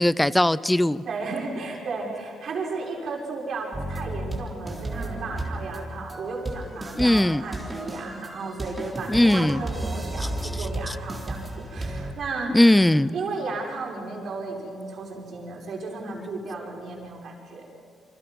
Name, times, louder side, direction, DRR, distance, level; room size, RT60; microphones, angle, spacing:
voice 1, 0.0-1.0 7.0-7.4 9.1-9.6 10.9-11.0 12.5-13.2, left 1 dB, 10° left, 18 dB, 0.6 m, -19 dB
voice 2, 1.1-12.6 13.1-17.7, right 3 dB, 60° right, -2 dB, 5.6 m, -34 dB
sound 1, 3.7-12.1, right 1 dB, 20° right, 3.6 m, -33 dB
28.0 x 25.0 x 5.5 m, 2.3 s
cardioid pair, 90°, 0 cm